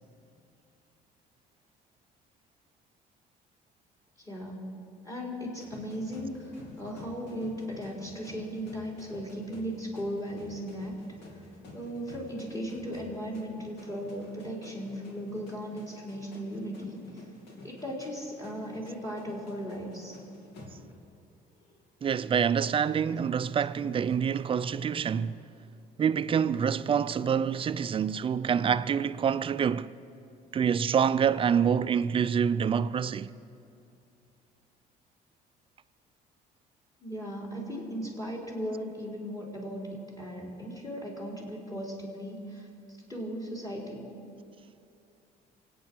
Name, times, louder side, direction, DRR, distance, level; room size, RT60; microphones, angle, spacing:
voice 1, 4.2-4.7 5.0-11.0 11.7-17.2 17.6-20.2 37.0-42.7 43.1-44.1, equal, 20° left, 4.1 m, -37 dB
sound 1, 5.6-21.2 21.5-21.8 24.1-25.4, left 2 dB, 85° left, 2.7 m, -51 dB
voice 2, 22.0-25.4 26.0-29.9 30.5-33.3, right 7 dB, 30° right, 0.4 m, -26 dB
24.0 x 9.0 x 6.2 m
cardioid pair, 110°, 17 cm